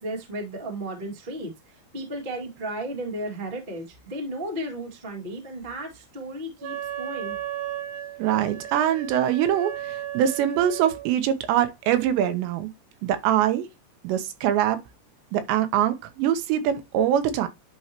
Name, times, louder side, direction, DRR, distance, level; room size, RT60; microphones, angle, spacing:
voice 1, 0.0-7.4, right 1 dB, 45° right, 0.6 m, -34 dB
Wind instrument woodwind instrument, 6.6-11.1, right 11 dB, 65° right, 1.7 m, -35 dB
voice 2, 8.2-12.7 13.0-13.7 14.0-14.8 15.3-17.5, right 10 dB, 90° right, 3.2 m, -23 dB
11.0 x 4.3 x 2.9 m
omnidirectional pair, 4.9 m